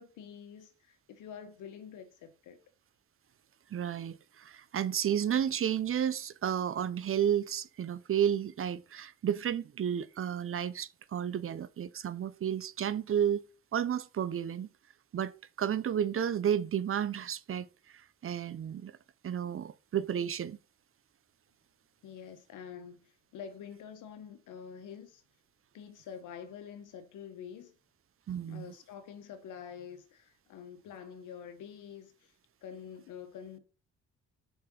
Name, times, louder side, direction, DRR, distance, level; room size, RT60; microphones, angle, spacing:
voice 1, 0.0-2.6 22.0-25.2 25.7-27.7 28.5-32.3 32.6-33.6, left 7 dB, 85° left, 1.6 m, -47 dB
voice 2, 3.7-13.4 13.7-14.7 15.1-17.7 18.2-18.9 19.2-20.6 28.3-28.7, right 9 dB, 45° right, 0.7 m, -32 dB
7.0 x 5.3 x 5.4 m
cardioid pair, 90°, 30 cm